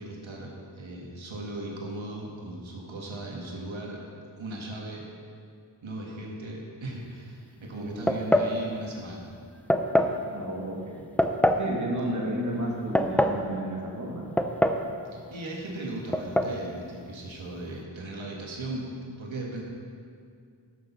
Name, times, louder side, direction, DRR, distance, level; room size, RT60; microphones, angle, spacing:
voice 1, 0.0-4.0 4.4-5.1 5.8-9.4 15.1-19.6, right 1 dB, 85° right, -2 dB, 1.6 m, -37 dB
sound 1, 8.1-8.6 9.7-10.2 11.2-11.7 12.7-13.4 14.4-14.9 15.1-15.2 16.1-16.5, left 1 dB, 5° left, 0.4 m, -23 dB
voice 2, 10.2-11.0 11.6-14.4, right 1 dB, 40° right, -3 dB, 1.9 m, -32 dB
13.0 x 6.3 x 5.7 m, 2.3 s
wide cardioid pair, 110°, 45 cm